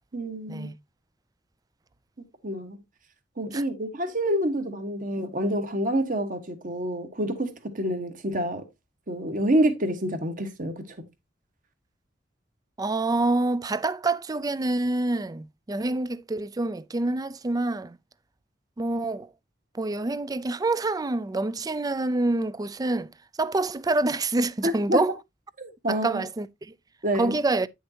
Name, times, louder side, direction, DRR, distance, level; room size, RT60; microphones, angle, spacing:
voice 1, 0.1-0.7 2.4-2.8 3.4-8.6 9.1-10.9 24.6-25.0 25.6-26.2 27.0-27.4, right 1 dB, 45° right, 1.5 m, -27 dB
voice 2, 12.8-18.0 18.8-19.3 19.7-23.1 23.4-25.1 25.9-26.7 27.2-27.7, right 2 dB, 20° right, 0.4 m, -27 dB
9.3 x 6.5 x 2.8 m
head